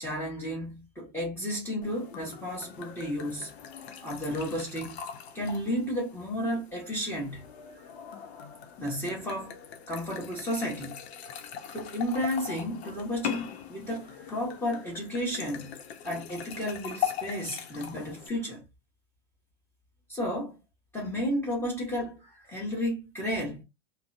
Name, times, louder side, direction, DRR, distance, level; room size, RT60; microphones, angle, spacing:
voice 1, 0.0-3.5 4.0-5.0 5.3-7.4 7.8-7.9 8.8-9.6 9.9-11.0 11.7-15.7 16.0-18.6 20.1-20.6 20.9-23.6, equal, 10° left, 1.2 m, -32 dB
sound 1, 1.8-18.3, left 8 dB, 80° left, 0.8 m, -40 dB
2.6 x 2.2 x 2.6 m
supercardioid pair, 140°, 31 cm